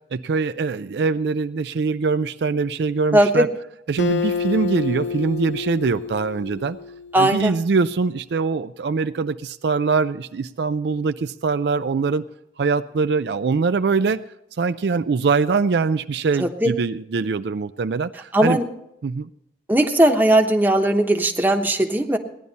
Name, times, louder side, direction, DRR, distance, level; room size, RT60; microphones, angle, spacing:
voice 1, 0.1-3.5 3.9-6.8 7.2-12.2 12.6-14.2 14.6-18.6 19.0-19.3, right 4 dB, 65° right, 11 dB, 0.4 m, -23 dB
voice 2, 3.1-3.5 7.1-7.6 16.4-16.7 18.3-18.7 19.7-22.2, right 1 dB, 10° right, 3 dB, 1.0 m, -18 dB
Acoustic guitar, 4.0-7.5, left 5 dB, 75° left, 0.6 m, -28 dB
17.5 x 11.0 x 4.1 m, 0.79 s
head